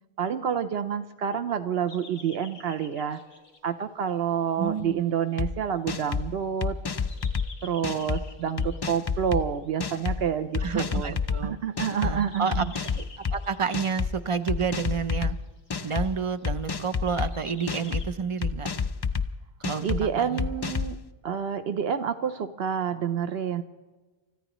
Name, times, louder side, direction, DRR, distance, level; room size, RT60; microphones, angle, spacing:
voice 1, 0.2-3.2 3.6-6.8 7.6-11.1 11.4-12.7 19.8-21.0 21.2-23.6, right 8 dB, 75° right, 11 dB, 0.9 m, -28 dB
sound 1, 1.9-9.8 10.8-11.5 11.8-18.1, left 3 dB, 65° left, 2.8 m, -51 dB
voice 2, 4.6-5.0 10.6-11.6 12.0-12.7 13.0-15.4 15.8-18.7 19.6-20.5, right 6 dB, 40° right, 10 dB, 0.5 m, -30 dB
sound 2, 5.4-5.5 5.9-6.3 6.6-7.5 7.8-8.2 8.6-9.4 9.8-10.2 10.5-11.4 11.8-12.1 12.5-13.4 13.7-14.1 14.5-15.3 15.7-16.1 16.4-17.3 17.7-18.0 18.4-19.3 19.6-20.0 20.4-20.9, left 6 dB, 40° left, 0.3 m, -28 dB
30.0 x 14.0 x 3.0 m, 1.3 s
omnidirectional pair, 1.1 m